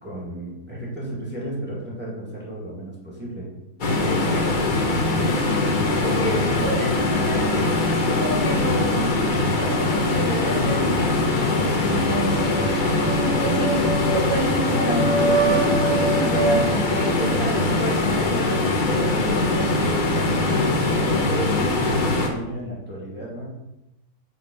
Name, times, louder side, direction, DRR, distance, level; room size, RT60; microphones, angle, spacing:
voice 1, 0.0-3.5 4.0-4.2 13.4-13.8 20.9-23.5, right 1 dB, 5° right, -4 dB, 1.9 m, -32 dB
sound 1, 3.8-22.3, left 2 dB, 40° left, 0.9 m, -22 dB
voice 2, 4.1-4.4 6.0-9.0 9.6-12.4 13.2-13.8 14.3-20.3, equal, 65° left, -1 dB, 1.8 m, -30 dB
sound 2, 12.2-18.0, right 3 dB, 65° right, 1.8 m, -26 dB
8.1 x 3.9 x 5.4 m, 0.93 s
omnidirectional pair, 1.6 m